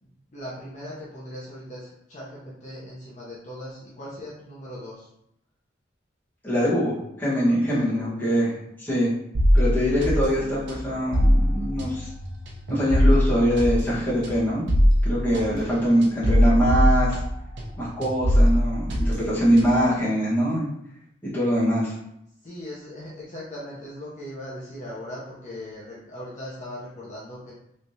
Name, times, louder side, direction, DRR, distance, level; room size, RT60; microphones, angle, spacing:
voice 1, 0.0-5.1 7.7-8.5 15.4-16.1 22.4-27.5, equal, 40° left, -8 dB, 0.8 m, -39 dB
voice 2, 6.4-9.1 9.5-12.1 12.7-14.6 15.0-17.2 17.8-20.7 21.2-21.9, equal, 10° left, -10 dB, 1.3 m, -23 dB
sound 1, 9.3-17.7 18.0-19.9, equal, 75° right, 0.7 m, -22 dB
3.4 x 3.2 x 2.7 m, 0.78 s
head